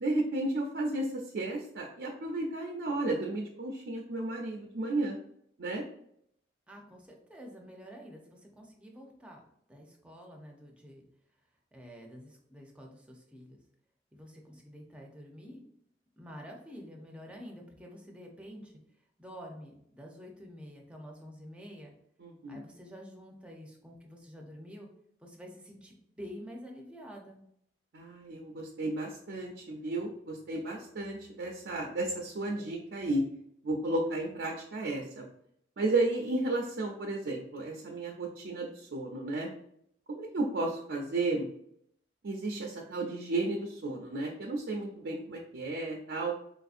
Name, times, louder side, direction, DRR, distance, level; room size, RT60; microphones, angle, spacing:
voice 1, 0.0-5.2 5.6-5.8 22.2-22.6 27.9-33.2 33.6-35.3 35.8-39.5 40.1-41.5 42.2-46.3, right 2 dB, 70° right, 0 dB, 0.5 m, -33 dB
voice 2, 6.7-9.4 9.7-11.0 11.7-13.6 14.1-15.6 16.2-18.8 19.2-21.9 22.5-24.9 25.2-27.4, equal, 5° right, 0 dB, 0.5 m, -48 dB
3.9 x 2.6 x 2.4 m, 0.71 s
head